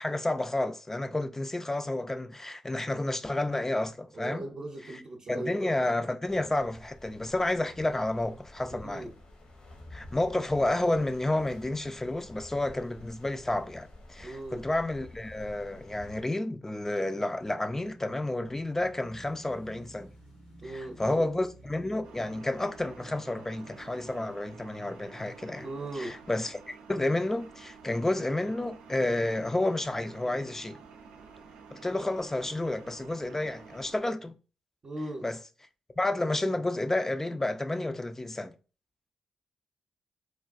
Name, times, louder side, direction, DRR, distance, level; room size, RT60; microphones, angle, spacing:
voice 1, 0.0-4.4 4.9-5.0 5.3-9.1 9.9-20.1 20.6-25.7 25.9-30.8 31.7-34.3 35.2-35.4 36.0-38.6, left 2 dB, 20° left, 0.3 m, -30 dB
voice 2, 4.1-5.8 8.8-9.1 14.2-14.7 20.6-21.3 25.6-26.1 34.8-35.3, right 2 dB, 50° right, 0.6 m, -38 dB
sound 1, 6.3-16.2, left 1 dB, 60° left, 0.9 m, -50 dB
Motorcycle / Engine, 16.6-24.9, right 1 dB, 90° left, 1.1 m, -54 dB
sound 2, 22.0-34.0, right 5 dB, 90° right, 0.3 m, -51 dB
3.1 x 2.2 x 2.4 m
supercardioid pair, 40°, 2 cm